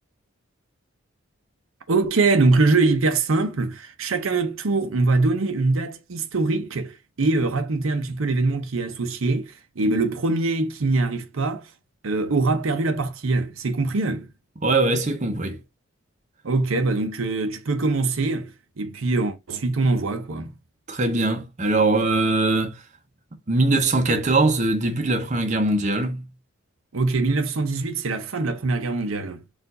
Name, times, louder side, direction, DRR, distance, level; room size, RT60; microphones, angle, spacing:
voice 1, 1.9-11.7 12.0-14.3 16.4-20.5 26.9-29.4, right 3 dB, 75° right, 0.7 m, -23 dB
voice 2, 14.6-15.6 20.9-22.8 23.5-26.2, right 2 dB, 35° right, 0.7 m, -21 dB
4.5 x 2.5 x 3.8 m
head